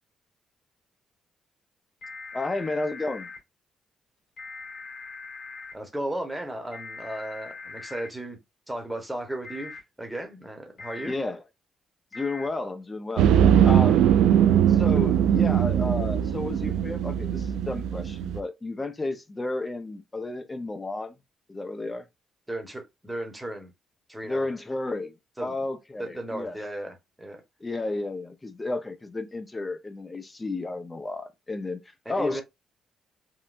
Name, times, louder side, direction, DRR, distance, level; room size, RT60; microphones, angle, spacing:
sound 1, 2.0-3.4 4.4-5.7 6.7-8.1 9.4-9.8 10.8-11.1 12.1-12.5, left 4 dB, 55° left, 1.9 m, -41 dB
voice 1, 2.3-3.3 11.0-11.4 12.1-13.3 13.6-14.1 14.7-21.1 21.5-22.1 24.2-25.1 25.4-26.6 27.6-31.8 32.1-32.4, left 2 dB, 20° left, 0.6 m, -32 dB
voice 2, 5.7-8.4 8.7-11.1 22.5-23.7 24.1-24.5 25.4-25.5 26.0-27.4 32.0-32.4, right 1 dB, 5° right, 1.0 m, -35 dB
sound 2, 13.2-18.4, right 9 dB, 85° right, 0.3 m, -21 dB
3.7 x 2.2 x 2.4 m
cardioid pair, 90°, 0 cm